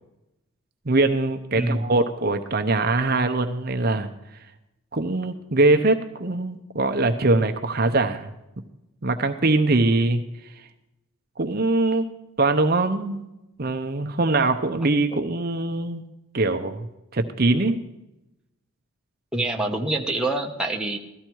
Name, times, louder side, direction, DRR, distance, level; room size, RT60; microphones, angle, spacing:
voice 1, 0.9-4.1 4.9-8.3 9.0-10.2 11.4-12.1 12.4-13.3 13.6-16.0 16.3-16.9 17.1-17.8, right 2 dB, 45° right, 7 dB, 0.8 m, -22 dB
voice 2, 19.3-21.0, right 2 dB, 5° right, 0 dB, 1.1 m, -25 dB
17.0 x 13.5 x 4.6 m, 0.93 s
head